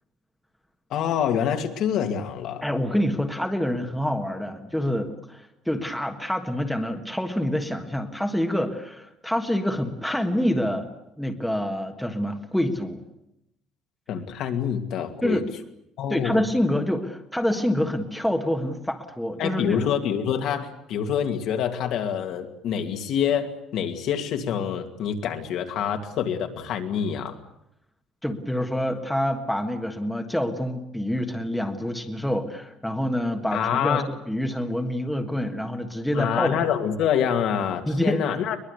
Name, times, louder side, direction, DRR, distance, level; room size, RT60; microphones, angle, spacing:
voice 1, 0.9-2.6 14.1-15.4 16.0-16.4 19.4-27.4 33.5-34.1 36.1-38.6, left 8 dB, 60° left, 5 dB, 2.4 m, -26 dB
voice 2, 2.6-10.9 11.2-13.0 15.2-15.4 16.1-19.9 28.2-36.6 37.8-38.2, left 1 dB, ahead, 4 dB, 1.5 m, -26 dB
22.5 x 21.5 x 8.3 m, 0.80 s
cardioid pair, 175°, 0 cm